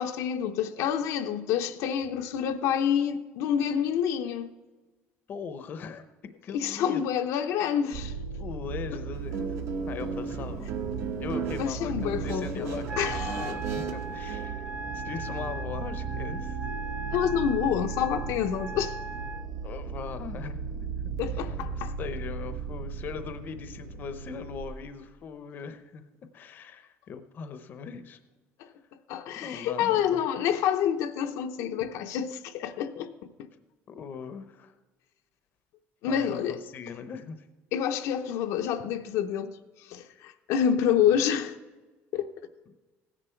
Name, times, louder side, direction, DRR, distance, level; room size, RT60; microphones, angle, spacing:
voice 1, 0.0-4.5 6.5-8.1 11.6-13.5 17.1-19.0 21.2-21.9 28.6-28.7 29.1-33.5 36.0-36.6 37.7-41.6 42.1-42.3, left 9 dB, 75° left, 0.7 m, -28 dB
voice 2, 5.3-7.0 8.4-9.6 9.8-10.7 11.2-13.0 13.3-14.6 14.9-16.6 19.6-26.0 26.3-28.2 29.4-30.2 33.9-34.7 36.1-37.5, left 6 dB, 40° left, 0.7 m, -40 dB
sound 1, 7.9-24.6, right 5 dB, 85° right, 1.4 m, -36 dB
Guitar, 9.1-14.5, right 5 dB, 55° right, 1.0 m, -36 dB
Wind instrument woodwind instrument, 12.9-19.5, right 4 dB, 20° right, 0.6 m, -39 dB
16.0 x 10.0 x 4.5 m
cardioid pair, 165°, 5 cm